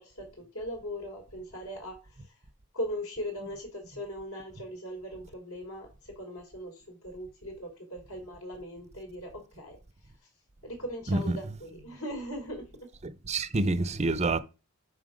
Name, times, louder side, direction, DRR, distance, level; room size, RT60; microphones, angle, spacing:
voice 1, 0.0-2.0 2.2-2.3 2.7-9.8 10.6-12.6, equal, 70° left, 3.7 m, -39 dB
voice 2, 13.0-14.4, right 2 dB, 30° right, 0.6 m, -27 dB
7.6 x 5.6 x 5.1 m
head